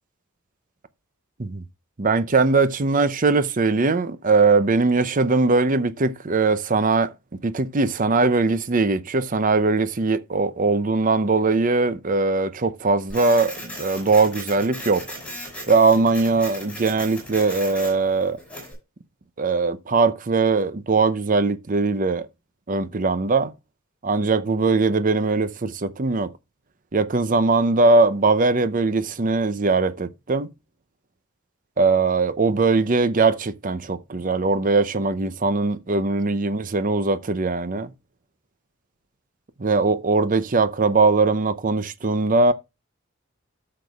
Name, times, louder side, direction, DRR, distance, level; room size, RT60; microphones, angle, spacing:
voice 1, 2.0-7.1 7.4-15.1 15.7-18.4 19.4-22.3 22.7-23.5 24.0-26.3 26.9-30.5 31.8-37.9 39.6-42.5, right 3 dB, 40° right, 0.6 m, -20 dB
Printer, 13.1-18.7, equal, 5° left, 5.7 m, -37 dB
13.0 x 6.7 x 2.4 m
head